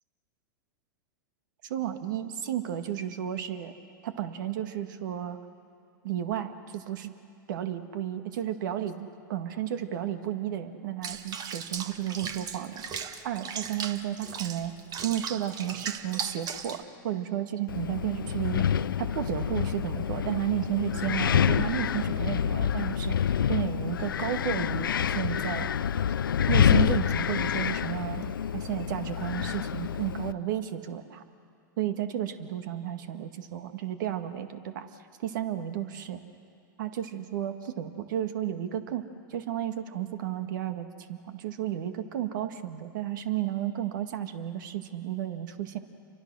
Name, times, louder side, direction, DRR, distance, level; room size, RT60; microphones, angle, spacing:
voice 1, 1.6-3.7 4.0-5.4 6.0-7.1 7.5-12.8 13.2-14.8 15.0-18.7 19.0-23.2 23.5-25.7 26.5-31.2 31.8-34.9 35.2-36.2 36.8-39.0 39.3-45.8, right 11 dB, 70° right, 8 dB, 1.9 m, -32 dB
Water / Bathtub (filling or washing), 11.0-16.8, right 7 dB, 35° right, 1.4 m, -37 dB
Wind, 17.7-30.3, left 8 dB, 85° left, 0.5 m, -27 dB
29.5 x 24.0 x 6.4 m, 2.5 s
hypercardioid pair, 105°, 11 cm